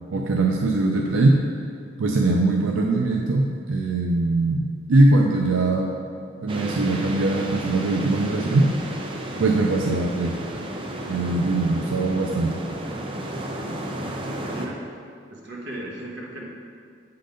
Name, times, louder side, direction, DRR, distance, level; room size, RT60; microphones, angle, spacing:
voice 1, 0.1-1.4 2.0-5.9 6.4-8.7 9.4-10.3 11.1-12.6, right 2 dB, 85° right, 0 dB, 0.5 m, -21 dB
sound 1, 6.5-14.7, right 1 dB, 25° right, 0.5 m, -32 dB
voice 2, 14.4-14.8 15.3-16.4, right 1 dB, 60° right, -2 dB, 1.2 m, -36 dB
7.5 x 3.8 x 5.1 m, 2.2 s
head